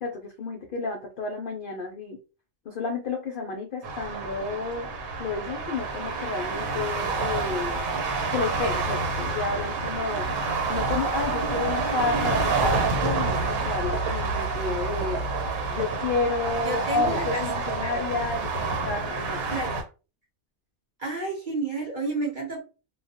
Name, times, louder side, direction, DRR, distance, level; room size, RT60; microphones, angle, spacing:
voice 1, 0.0-2.2 2.7-4.9 5.2-7.8 8.3-10.3 10.7-15.2 15.7-19.6, left 4 dB, 70° left, 2 dB, 0.5 m, -31 dB
sound 1, 3.8-19.8, right 3 dB, 75° right, 1.2 m, -28 dB
voice 2, 16.6-18.2 19.5-19.8 21.0-22.6, right 2 dB, 45° right, -1 dB, 0.8 m, -31 dB
2.3 x 2.1 x 2.6 m, 0.32 s
omnidirectional pair, 1.4 m